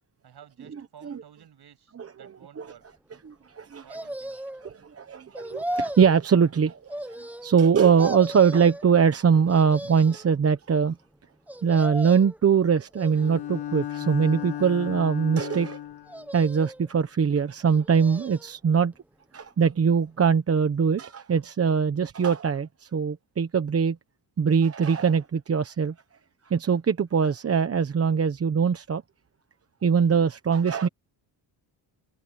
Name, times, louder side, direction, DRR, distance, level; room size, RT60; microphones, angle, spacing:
voice 1, 0.2-2.9 3.8-4.4, right 9 dB, 55° right, 8.0 m, -52 dB
voice 2, 3.2-3.8 4.6-11.0 11.6-15.8 16.3-18.9 19.3-24.0 24.4-25.9 26.5-29.0 29.8-30.9, right 6 dB, 30° right, 1.0 m, -22 dB
sound 1, 3.9-4.7 5.3-6.2 6.9-7.7 8.0-8.8 9.5-10.3 11.5-12.4 12.9-13.6 14.3-15.0 16.1-16.9 17.6-18.5 18.9-19.0, right 1 dB, 5° right, 1.0 m, -37 dB
Bowed string instrument, 13.1-16.3, left 11 dB, 60° left, 1.8 m, -35 dB
cardioid pair, 150°, 46 cm